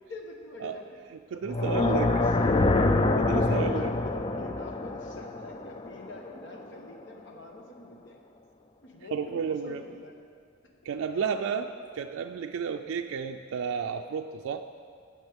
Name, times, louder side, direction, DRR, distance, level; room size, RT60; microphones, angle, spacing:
voice 1, 0.1-1.0 1.3-2.7 3.1-8.2 8.8-10.1 11.1-11.2, left 1 dB, 60° left, 1 dB, 1.2 m, -45 dB
voice 2, 1.3-2.3 3.2-3.9 9.1-9.8 10.8-14.7, right 6 dB, 85° right, 5 dB, 0.4 m, -32 dB
sound 1, 1.4-6.6, left 2 dB, 25° left, 0.3 m, -26 dB
16.5 x 6.3 x 3.5 m, 2.2 s
head